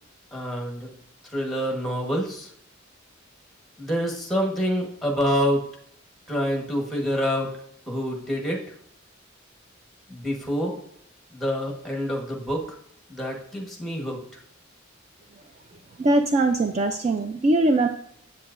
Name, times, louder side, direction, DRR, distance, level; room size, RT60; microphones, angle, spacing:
voice 1, 0.3-0.9 1.3-2.5 3.8-5.6 6.3-7.5 7.9-8.6 10.1-10.7 11.3-12.6 13.1-14.2, equal, ahead, 0 dB, 1.2 m, -27 dB
voice 2, 16.0-17.9, right 2 dB, 35° right, 6 dB, 0.4 m, -21 dB
7.7 x 7.4 x 2.5 m, 0.68 s
head